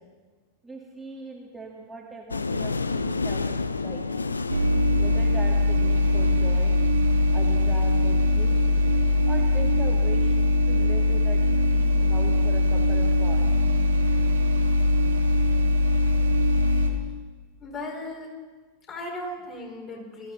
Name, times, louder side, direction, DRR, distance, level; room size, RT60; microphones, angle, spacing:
voice 1, 0.6-4.2 5.0-6.9 7.3-8.8 9.3-10.3 10.7-11.5 11.7-13.5, right 2 dB, 5° right, -3 dB, 2.0 m, -40 dB
sound 1, 2.3-7.9, left 4 dB, 80° left, 0.6 m, -31 dB
sound 2, 4.5-16.9, left 2 dB, 70° right, 2.3 m, -21 dB
voice 2, 17.6-18.3 18.9-20.3, left 1 dB, 30° left, -1 dB, 4.8 m, -36 dB
21.5 x 14.0 x 4.1 m, 1.4 s
figure-of-eight pair, 90°, 0 cm